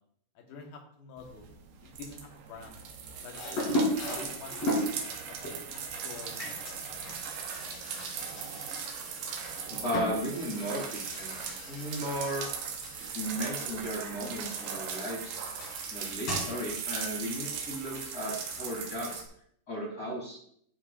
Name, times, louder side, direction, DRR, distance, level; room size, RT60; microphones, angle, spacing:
voice 1, 0.4-1.5 1.8-2.8 3.2-6.6, left 4 dB, 80° left, 1 dB, 3.1 m, -48 dB
sound 1, 1.2-19.2, right 6 dB, 80° right, 2.8 m, -39 dB
sound 2, 3.3-5.0 5.4-13.3 13.5-19.0, equal, 45° left, 4.0 m, -37 dB
voice 2, 9.3-11.4 11.7-12.5 13.1-15.5 15.9-19.2 19.7-20.4, equal, 25° left, -5 dB, 3.1 m, -35 dB
12.0 x 5.8 x 2.5 m, 0.65 s
omnidirectional pair, 4.2 m